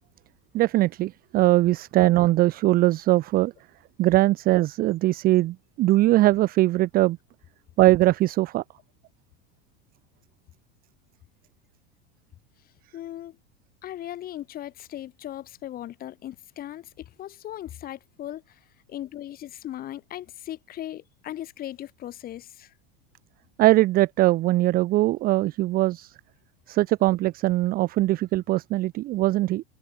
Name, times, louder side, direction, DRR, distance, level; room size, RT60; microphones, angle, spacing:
voice 1, 0.5-3.5 4.0-7.2 7.8-8.6 23.6-26.1 26.7-29.6, right 16 dB, 30° right, 0.4 m, -21 dB
voice 2, 12.9-13.4 13.8-18.6 18.9-22.7, left 12 dB, 30° left, 0.6 m, -38 dB
hypercardioid pair, 95°, 29 cm